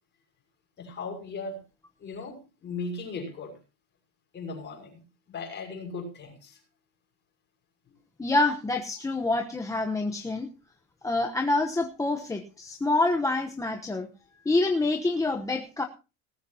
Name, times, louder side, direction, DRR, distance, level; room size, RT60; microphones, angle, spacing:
voice 1, 0.8-1.6 2.0-3.6 4.3-6.6 7.9-8.0, left 3 dB, 25° left, 3 dB, 6.0 m, -38 dB
voice 2, 8.2-10.5 11.0-14.1 14.4-15.9, left 2 dB, 10° left, 4 dB, 1.0 m, -26 dB
18.5 x 14.0 x 2.8 m, 0.31 s
cardioid pair, 160°, 38 cm